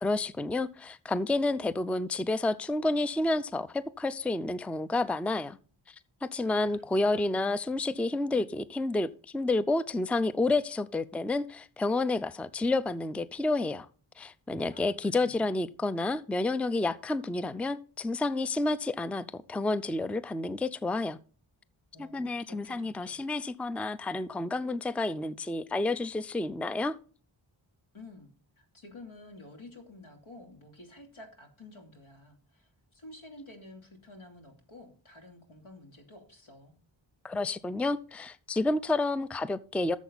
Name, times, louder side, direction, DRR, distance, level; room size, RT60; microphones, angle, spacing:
voice 1, 0.0-5.6 5.9-6.0 6.2-13.9 14.2-21.2 22.0-27.0 37.2-40.0, left 2 dB, 5° left, 0.4 m, -30 dB
voice 2, 6.4-7.5 14.7-15.6 21.9-23.2 27.9-28.3 28.6-36.7, left 2 dB, 85° left, 3.0 m, -51 dB
12.5 x 7.2 x 4.0 m
wide cardioid pair, 65°, 47 cm